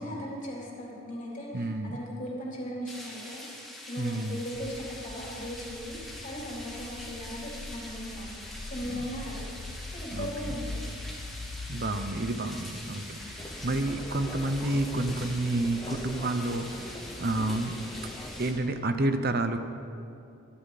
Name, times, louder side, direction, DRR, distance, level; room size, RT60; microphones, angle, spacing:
voice 1, 0.0-3.5 3.9-9.5 9.9-10.9, equal, 35° left, -4 dB, 3.6 m, -38 dB
voice 2, 1.5-2.0 4.0-4.4 8.8-9.0 10.1-10.6 11.7-17.8 18.4-19.6, right 2 dB, 45° right, 8 dB, 0.9 m, -30 dB
sound 1, 2.9-18.5, left 1 dB, ahead, 2.4 m, -44 dB
sound 2, 4.5-15.4, left 2 dB, 50° left, 0.7 m, -43 dB
sound 3, 13.4-18.6, left 1 dB, 15° left, 0.9 m, -42 dB
23.5 x 11.5 x 4.2 m, 2.7 s
head